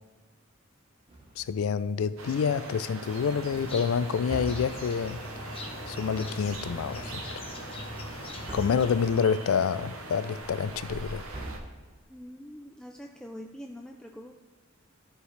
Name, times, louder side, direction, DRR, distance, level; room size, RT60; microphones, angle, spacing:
sound 1, 1.1-1.7 4.3-5.2 8.5-9.1 11.3-12.1, right 1 dB, 25° right, 1.0 m, -41 dB
voice 1, 1.4-5.2 5.9-7.4 8.5-11.2, left 6 dB, 80° left, 0.4 m, -28 dB
sound 2, 2.2-11.6, right 2 dB, 70° right, 0.9 m, -42 dB
sound 3, 3.0-9.1, left 1 dB, 30° left, 1.0 m, -41 dB
voice 2, 12.1-14.3, equal, 5° left, 0.3 m, -44 dB
13.5 x 4.9 x 3.2 m
head